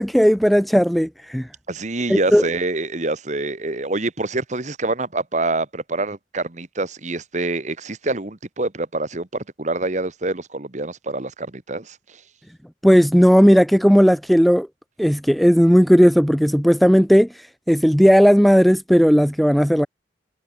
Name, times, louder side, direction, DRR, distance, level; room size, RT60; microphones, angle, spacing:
voice 1, 0.0-1.5 2.1-2.4 12.8-14.7 15.0-17.3 17.7-19.9, equal, ahead, 0.6 m, -15 dB
voice 2, 1.7-12.2, right 2 dB, 40° right, 1.5 m, -26 dB
head